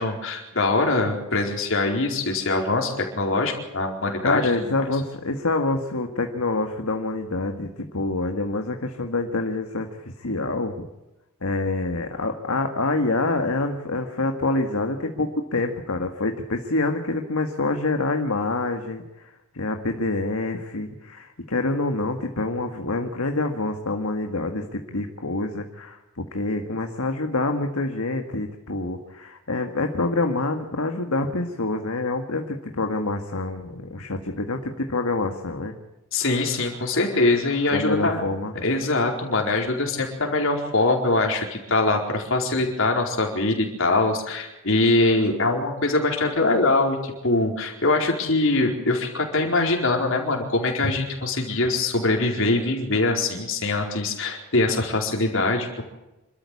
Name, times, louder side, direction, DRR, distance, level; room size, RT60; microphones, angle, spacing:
voice 1, 0.0-4.5 36.1-38.2 38.6-55.8, left 2 dB, 65° left, 1 dB, 4.5 m, -23 dB
voice 2, 4.2-10.9 11.4-35.8 37.7-38.5, left 2 dB, 90° left, 4 dB, 1.9 m, -26 dB
27.5 x 13.5 x 8.5 m, 1.0 s
head